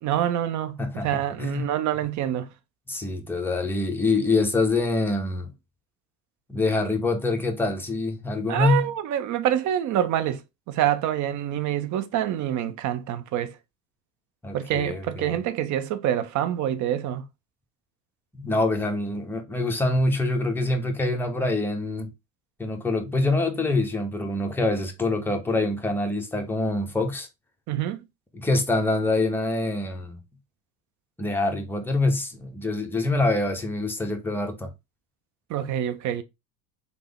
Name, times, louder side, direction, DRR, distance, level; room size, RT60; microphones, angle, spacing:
voice 1, 0.0-2.5 8.5-10.4 10.7-13.5 14.5-17.2 27.7-28.0 35.5-36.2, right 11 dB, 40° right, 0.5 m, -26 dB
voice 2, 0.8-1.7 2.9-5.5 6.5-8.9 14.4-15.4 18.4-22.1 22.6-27.3 28.3-30.2 31.2-34.7, left 2 dB, 5° left, 0.7 m, -25 dB
3.4 x 2.1 x 3.3 m
hypercardioid pair, 80°, 44 cm